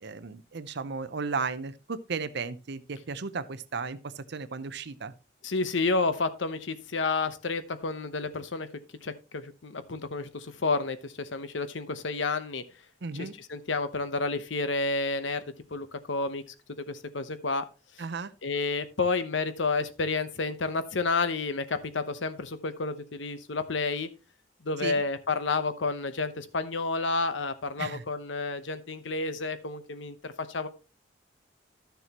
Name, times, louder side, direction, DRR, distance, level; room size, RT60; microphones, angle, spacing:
voice 1, 0.0-5.1 13.0-13.3 18.0-18.3 24.8-25.0 27.8-28.0, right 4 dB, 65° right, 0.7 m, -35 dB
voice 2, 5.4-8.7 9.0-12.6 13.1-15.4 15.7-16.4 16.9-17.6 18.4-24.1 24.6-30.7, left 3 dB, 75° left, 0.9 m, -30 dB
12.0 x 6.9 x 2.9 m
head